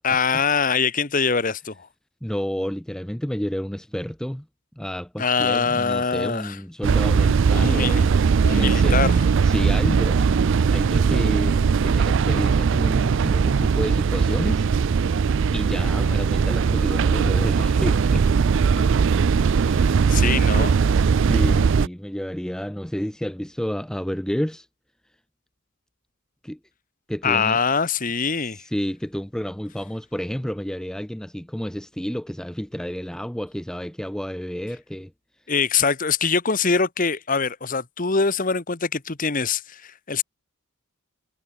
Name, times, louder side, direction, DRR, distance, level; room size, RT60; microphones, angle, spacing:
voice 1, 0.0-1.9 5.2-6.6 7.5-8.0 8.4-9.2 15.8-15.9 19.7-20.8 27.2-28.6 35.5-40.2, left 5 dB, 35° left, 1.1 m, -23 dB
voice 2, 2.2-4.5 4.8-8.2 8.5-9.0 9.4-10.3 10.7-15.2 15.5-18.3 18.8-18.9 19.5-20.0 21.1-24.7 26.4-26.6 27.1-27.6 28.4-35.1, equal, 5° left, 0.4 m, -30 dB
sound 1, 6.8-21.9, right 5 dB, 55° right, 0.4 m, -19 dB
head